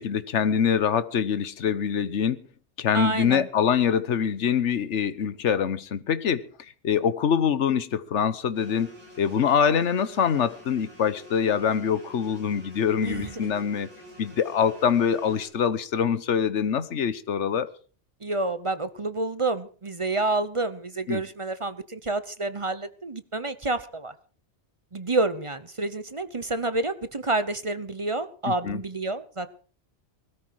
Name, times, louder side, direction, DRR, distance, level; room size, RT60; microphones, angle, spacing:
voice 1, 0.0-2.4 2.8-6.5 6.8-13.9 14.2-17.7 21.1-21.2 28.5-28.8, left 7 dB, 75° left, 1.3 m, -24 dB
voice 2, 2.9-3.5 13.0-13.5 18.2-24.1 24.9-29.5, right 2 dB, 30° right, 0.9 m, -29 dB
sound 1, 8.5-15.5, equal, 20° left, 7.3 m, -48 dB
20.5 x 13.5 x 4.7 m
omnidirectional pair, 1.2 m